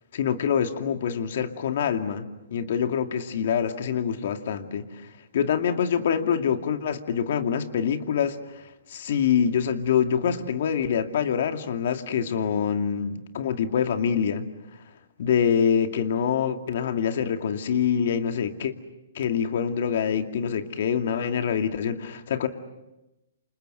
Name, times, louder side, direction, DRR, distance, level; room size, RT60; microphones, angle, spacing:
voice 1, 0.1-4.8 5.3-8.4 8.9-14.5 15.2-18.7 19.1-22.5, left 7 dB, 60° left, 6 dB, 2.4 m, -25 dB
29.0 x 27.0 x 6.8 m, 0.97 s
hypercardioid pair, 145°, 0 cm